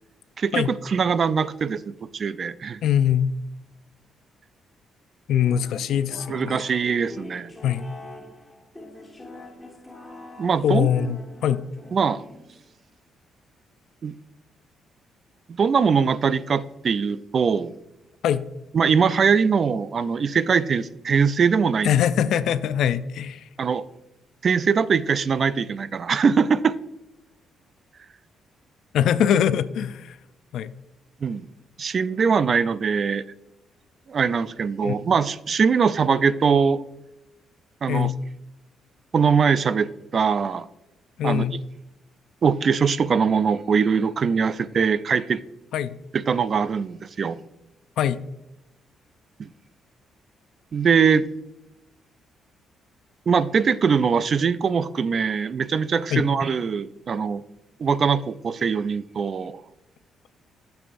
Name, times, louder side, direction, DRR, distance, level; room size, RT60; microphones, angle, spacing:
voice 1, 0.4-2.8 6.3-7.5 10.4-11.1 11.9-12.2 14.0-14.2 15.6-17.7 18.7-21.9 23.6-23.8 24.4-26.8 31.2-31.5 31.8-33.2 34.1-36.8 37.8-38.1 39.1-40.7 41.2-41.4 42.4-45.4 46.1-47.4 49.4-49.5 50.7-51.3 53.3-57.4 57.8-59.6, right 6 dB, 45° right, 16 dB, 0.3 m, -22 dB
voice 2, 2.8-3.3 5.3-6.7 7.6-7.9 10.6-11.6 18.2-18.5 21.8-23.5 28.9-30.2 30.5-30.7 34.8-35.0 37.9-38.2 41.2-41.5 45.7-46.0 48.0-48.2 56.1-56.3, left 9 dB, 75° left, 14 dB, 0.4 m, -22 dB
sound 1, 5.4-12.8, left 2 dB, 10° left, 1.3 m, -44 dB
10.0 x 6.9 x 2.5 m, 0.92 s
cardioid pair, 90°, 0 cm